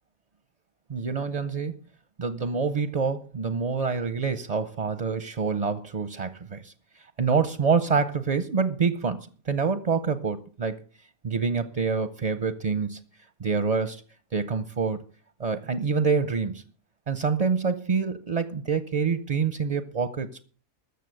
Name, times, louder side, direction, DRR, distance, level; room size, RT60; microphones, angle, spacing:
voice 1, 0.9-1.7 2.2-6.7 7.2-9.2 9.5-10.8 11.2-13.0 13.4-14.0 14.3-15.0 15.4-16.6 17.1-20.4, right 5 dB, 45° right, 13 dB, 0.4 m, -26 dB
13.5 x 6.7 x 7.8 m, 0.42 s
omnidirectional pair, 1.5 m